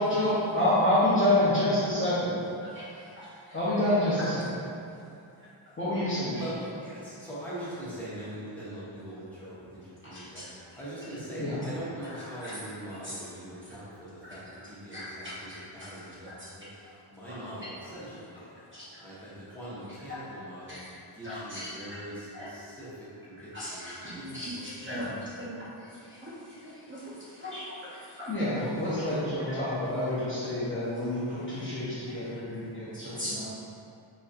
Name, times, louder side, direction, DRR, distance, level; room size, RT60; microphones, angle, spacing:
voice 1, 0.0-2.4 3.5-4.4 5.8-6.4 11.4-11.6 28.3-33.5, left 1 dB, 25° left, -11 dB, 0.7 m, -27 dB
voice 2, 2.6-3.6 5.4-5.7 6.3-6.4 10.1-10.6 11.1-11.2 12.0-12.6 13.0-13.3 13.6-13.8 14.2-17.0 17.3-17.6 17.8-17.9 18.5-19.2 19.9-20.4 20.7-20.8 21.2-21.7 22.3-22.5 23.4-28.7 29.0-29.1 29.4-29.6 30.1-30.2 31.1-31.5 32.1-32.2 33.0-33.5, equal, 25° right, -10 dB, 0.8 m, -42 dB
voice 3, 6.4-16.3 16.6-16.7 17.1-18.6 19.0-20.8 21.1-25.1 28.8-29.0, equal, 5° left, -11 dB, 1.1 m, -42 dB
4.1 x 4.1 x 2.5 m, 2.5 s
wide cardioid pair, 170°, 50 cm